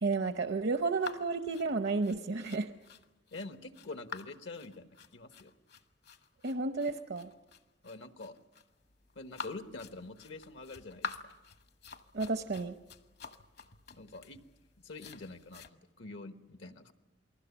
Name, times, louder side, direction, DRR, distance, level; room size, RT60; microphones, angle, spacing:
voice 1, 0.0-2.7 6.4-7.3 12.1-12.7, right 3 dB, 65° right, 8 dB, 0.8 m, -32 dB
sound 1, 1.0-15.7, left 4 dB, 60° left, 1.1 m, -48 dB
voice 2, 3.3-5.5 7.8-8.4 9.1-11.1 14.0-14.4 14.8-16.9, left 3 dB, 80° left, 8 dB, 1.2 m, -46 dB
28.5 x 20.0 x 7.1 m, 1.1 s
head